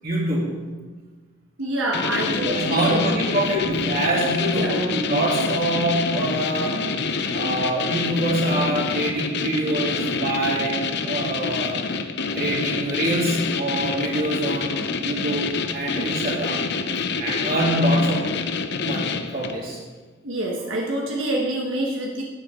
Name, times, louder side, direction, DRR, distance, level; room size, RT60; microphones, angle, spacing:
voice 1, 0.0-0.5 2.3-6.8 7.3-11.8 12.3-16.6 17.2-18.4 18.8-19.8, right 1 dB, 50° right, -4 dB, 3.1 m, -25 dB
voice 2, 1.6-3.1 4.5-4.8 20.2-22.2, right 1 dB, 70° right, -1 dB, 1.3 m, -26 dB
sound 1, 1.9-19.7, left 4 dB, 60° left, 0.7 m, -27 dB
13.0 x 9.4 x 3.7 m, 1.3 s
head